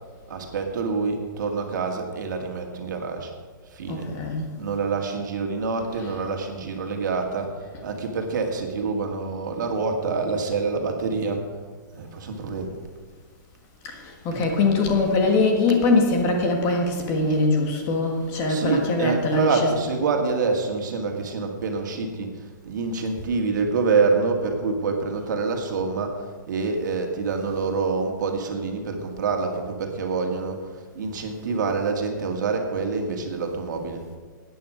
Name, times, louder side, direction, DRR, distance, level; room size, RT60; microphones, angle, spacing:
voice 1, 0.3-3.3 3.7-4.1 4.6-11.5 11.9-12.7 14.3-14.5 18.5-34.0, right 4 dB, 65° right, 3 dB, 2.0 m, -26 dB
voice 2, 3.9-4.5 5.9-6.1 13.8-19.8, left 3 dB, 25° left, 3 dB, 1.6 m, -22 dB
13.0 x 9.2 x 5.1 m, 1.5 s
hypercardioid pair, 165°, 11 cm